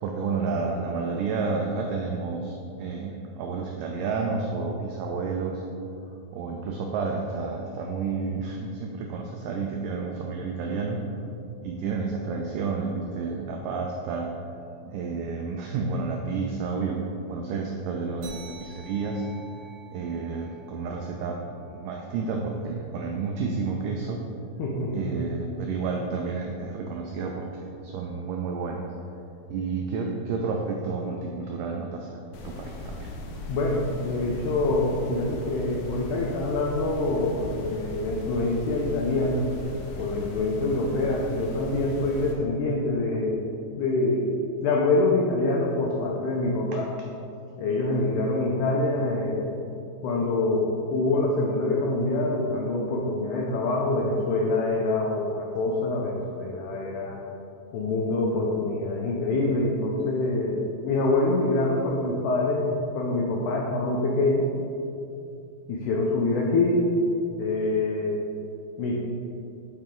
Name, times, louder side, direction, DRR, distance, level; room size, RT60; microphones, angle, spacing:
voice 1, 0.0-5.6 6.3-11.0 11.6-14.4 14.9-19.2 19.9-21.4 21.7-24.2 24.9-28.9 29.5-33.1, right 4 dB, 90° right, 1 dB, 1.9 m, -30 dB
sound 1, 18.2-23.1, right 3 dB, 65° right, 3.2 m, -49 dB
voice 2, 24.6-25.3 33.5-39.5 40.0-43.5 43.8-44.3 44.6-46.9 47.6-49.6 50.0-57.2 57.7-64.5 65.7-66.9 67.4-68.3 68.8-69.0, left 2 dB, 90° left, -2 dB, 1.7 m, -25 dB
sound 2, 32.3-42.3, left 2 dB, 75° left, 2.0 m, -38 dB
8.8 x 4.8 x 3.7 m, 2.7 s
omnidirectional pair, 4.4 m